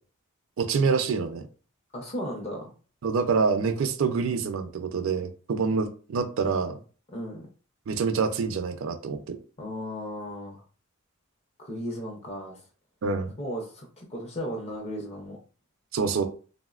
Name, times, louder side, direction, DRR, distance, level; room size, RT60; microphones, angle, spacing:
voice 1, 0.6-1.5 3.0-6.8 7.9-9.4 13.0-13.3 15.9-16.3, right 5 dB, 65° right, 6 dB, 0.4 m, -26 dB
voice 2, 1.9-2.7 7.1-7.5 9.6-10.6 11.6-12.6 13.4-15.4, equal, 30° left, 0 dB, 0.5 m, -35 dB
3.6 x 2.0 x 2.3 m, 0.38 s
head